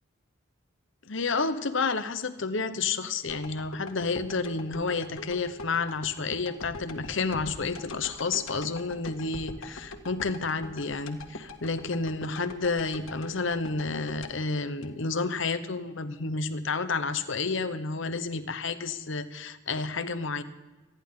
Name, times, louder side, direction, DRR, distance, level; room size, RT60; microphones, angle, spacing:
voice 1, 1.1-20.4, left 4 dB, 65° left, 11 dB, 1.0 m, -30 dB
sound 1, 3.3-15.5 15.9-16.0, left 2 dB, 85° left, 1.6 m, -43 dB
26.5 x 10.5 x 3.8 m, 1.1 s
head